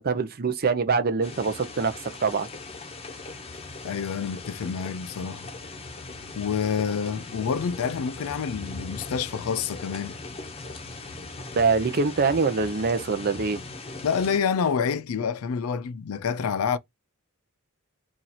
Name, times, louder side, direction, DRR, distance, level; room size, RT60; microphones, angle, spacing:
voice 1, 0.0-2.5 11.5-13.6, right 4 dB, 45° right, 0.5 m, -24 dB
sound 1, 1.2-14.4, left 3 dB, 25° left, 0.7 m, -39 dB
voice 2, 3.8-5.5 6.3-10.2 14.0-16.8, left 6 dB, 75° left, 0.4 m, -28 dB
2.9 x 2.5 x 4.0 m
head